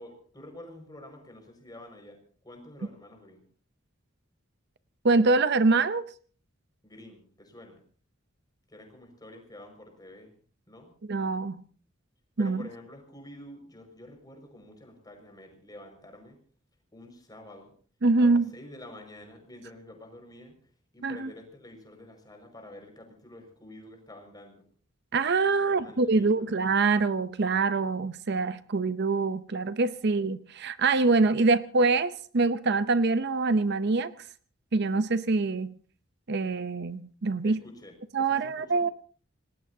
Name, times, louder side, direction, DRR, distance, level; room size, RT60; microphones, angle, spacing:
voice 1, 0.0-2.2 2.4-3.4 6.8-7.8 8.7-10.4 10.7-10.9 12.4-16.4 16.9-17.7 18.2-20.5 20.9-24.6 25.5-26.5 37.4-38.0 38.3-38.8, left 1 dB, 20° left, 3 dB, 5.5 m, -48 dB
voice 2, 5.0-6.0 11.1-11.6 12.4-12.6 18.0-18.5 21.0-21.3 25.1-34.1 34.7-35.7 36.3-37.6 38.1-38.9, right 3 dB, 55° right, 12 dB, 0.7 m, -25 dB
26.0 x 19.5 x 2.8 m, 0.43 s
head